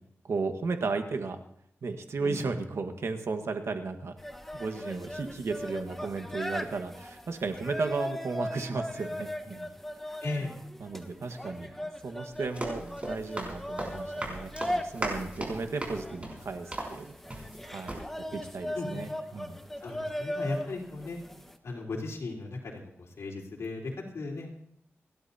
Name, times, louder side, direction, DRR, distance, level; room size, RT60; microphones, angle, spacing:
voice 1, 0.2-1.4 1.8-4.1 4.5-9.7 10.4-10.5 10.8-17.1 17.6-18.0 18.3-19.6, right 4 dB, 80° right, 6 dB, 1.4 m, -34 dB
sound 1, 4.2-21.6, left 1 dB, 5° left, 1.2 m, -39 dB
voice 2, 10.2-10.5 18.8-19.0 19.8-21.2 21.6-24.6, left 3 dB, 85° left, -1 dB, 3.7 m, -36 dB
Run, 12.3-17.6 17.9-18.0, right 1 dB, 30° right, 5.4 m, -38 dB
29.5 x 12.0 x 2.8 m, 0.71 s
wide cardioid pair, 100°, 5 cm